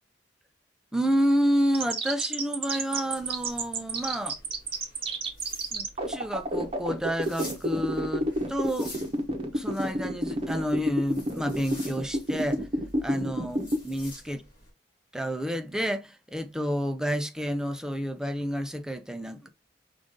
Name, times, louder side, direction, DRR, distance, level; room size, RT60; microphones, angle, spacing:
voice 1, 0.9-4.4 5.7-8.9 9.5-12.7 13.0-13.6 13.8-14.4 15.1-19.5, equal, 5° right, 0.4 m, -29 dB
sound 1, 1.7-13.8, right 1 dB, 30° right, 0.8 m, -29 dB
sound 2, 3.2-14.7, left 1 dB, 30° left, 2.8 m, -48 dB
5.0 x 2.5 x 3.6 m
head